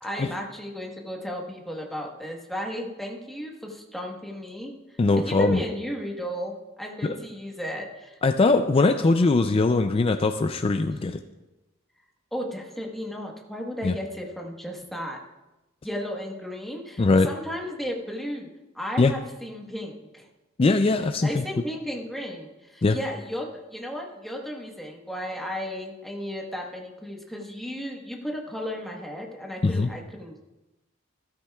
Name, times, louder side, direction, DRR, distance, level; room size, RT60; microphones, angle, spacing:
voice 1, 0.0-4.7 5.2-8.2 12.3-15.2 15.8-18.5 18.7-20.2 21.2-30.5, equal, ahead, 0 dB, 1.2 m, -34 dB
voice 2, 5.0-5.6 7.0-7.2 8.2-11.2 13.8-14.0 17.0-17.3 19.0-19.1 20.6-21.4 22.8-23.0 29.6-29.9, left 3 dB, 25° left, 7 dB, 0.3 m, -21 dB
13.0 x 13.0 x 2.3 m, 1.0 s
head